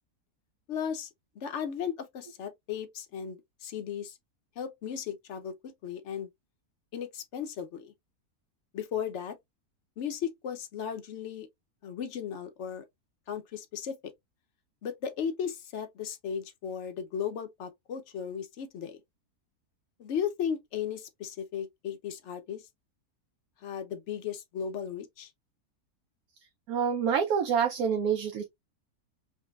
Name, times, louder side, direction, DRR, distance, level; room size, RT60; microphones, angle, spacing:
voice 1, 0.7-1.1 1.4-4.2 4.6-6.3 6.9-7.9 8.7-9.3 10.0-11.5 11.8-12.8 13.3-14.0 14.8-19.0 20.0-22.7 23.6-25.3, left 8 dB, 60° left, 0.9 m, -36 dB
voice 2, 26.7-28.5, right 7 dB, 80° right, 1.1 m, -27 dB
5.0 x 2.2 x 2.3 m
omnidirectional pair, 1.5 m